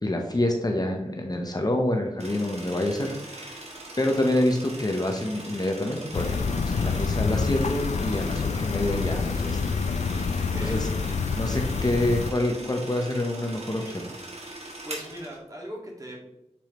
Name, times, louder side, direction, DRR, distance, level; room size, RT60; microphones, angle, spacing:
voice 1, 0.0-9.6 10.6-10.9 11.3-14.1, left 1 dB, 35° left, 2 dB, 0.9 m, -27 dB
sound 1, 2.2-15.4, right 2 dB, 65° right, 1.5 m, -41 dB
sound 2, 6.1-12.3, left 5 dB, 80° left, 0.4 m, -27 dB
voice 2, 10.3-10.9 14.5-16.2, equal, 30° right, -2 dB, 1.9 m, -40 dB
7.0 x 4.4 x 3.1 m, 0.89 s
wide cardioid pair, 50°, 12 cm